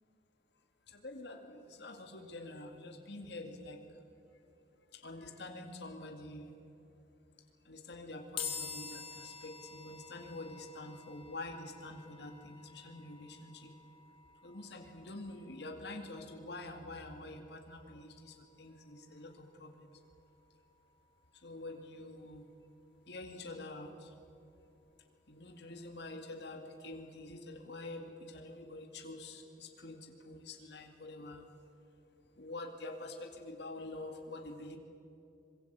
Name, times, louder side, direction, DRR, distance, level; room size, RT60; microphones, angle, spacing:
voice 1, 0.9-3.8 4.9-6.5 7.6-13.7 14.4-19.9 21.4-22.5 23.1-24.1 25.3-31.4 32.4-34.8, left 2 dB, 65° left, 3 dB, 2.4 m, -47 dB
sound 1, 8.4-21.7, left 6 dB, 30° left, 2.8 m, -50 dB
25.0 x 22.5 x 8.2 m, 2.8 s
head